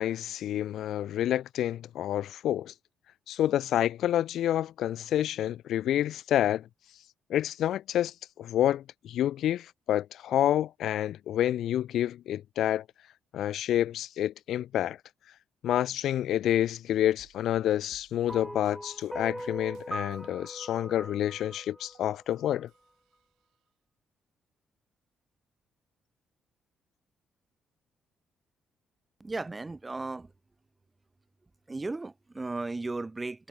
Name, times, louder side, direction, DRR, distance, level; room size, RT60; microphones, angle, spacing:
voice 1, 0.0-2.7 3.3-6.7 7.3-12.8 13.3-15.0 15.6-22.7, left 11 dB, 75° left, 0.3 m, -28 dB
sound 1, 17.2-20.5 20.8-22.4 22.7-23.6, right 15 dB, 90° right, 6.2 m, -61 dB
sound 2, 18.3-22.6, equal, 5° right, 2.2 m, -41 dB
voice 2, 29.2-30.3 31.7-33.5, right 3 dB, 20° right, 3.3 m, -35 dB
cardioid pair, 90°, 0 cm